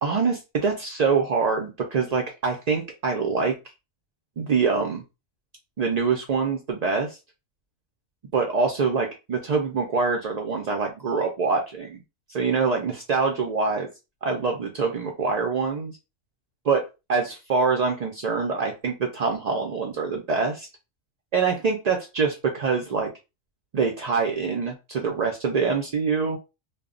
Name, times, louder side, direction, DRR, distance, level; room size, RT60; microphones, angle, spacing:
voice 1, 0.0-3.6 4.4-5.0 5.8-7.2 8.3-12.0 12.3-13.9 14.2-15.9 16.7-16.8 17.1-20.7 21.3-23.1 23.7-26.4, right 5 dB, 70° right, 2 dB, 0.3 m, -25 dB
2.2 x 2.0 x 3.6 m, 0.27 s
omnidirectional pair, 1.3 m